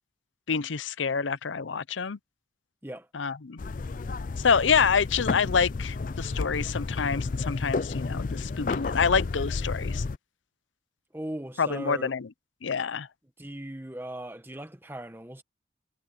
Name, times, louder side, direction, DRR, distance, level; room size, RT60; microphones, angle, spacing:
voice 1, 0.5-2.2 3.1-3.6 4.4-10.0 11.6-12.3 12.6-13.1, left 6 dB, 85° left, 0.6 m, -27 dB
sound 1, 3.6-10.2, left 3 dB, 45° left, 0.4 m, -31 dB
voice 2, 11.1-12.1 13.4-15.4, right 1 dB, 10° right, 1.3 m, -38 dB
head